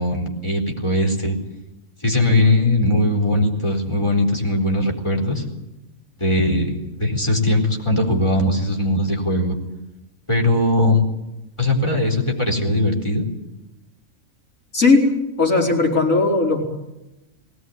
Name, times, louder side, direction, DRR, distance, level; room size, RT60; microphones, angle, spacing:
voice 1, 0.0-1.4 2.0-5.4 6.2-9.6 10.3-11.0 11.6-13.3, left 1 dB, 20° left, 1 dB, 4.3 m, -20 dB
voice 2, 15.4-16.6, left 3 dB, 70° left, -1 dB, 5.3 m, -17 dB
20.5 x 17.5 x 9.5 m, 0.94 s
omnidirectional pair, 1.4 m